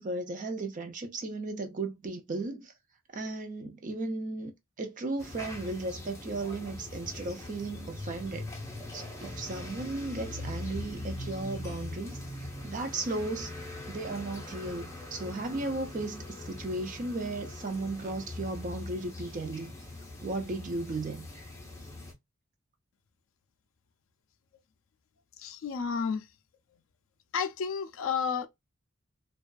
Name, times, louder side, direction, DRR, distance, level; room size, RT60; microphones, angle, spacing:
voice 1, 0.0-2.7 3.1-4.5 4.8-8.5 8.9-13.5 13.9-19.7 20.2-21.3, right 2 dB, 35° right, 0.4 m, -35 dB
sound 1, 5.2-22.1, left 2 dB, 15° left, 0.6 m, -42 dB
voice 2, 25.4-26.2 27.3-28.5, left 6 dB, 60° left, 0.3 m, -31 dB
2.5 x 2.3 x 2.2 m
head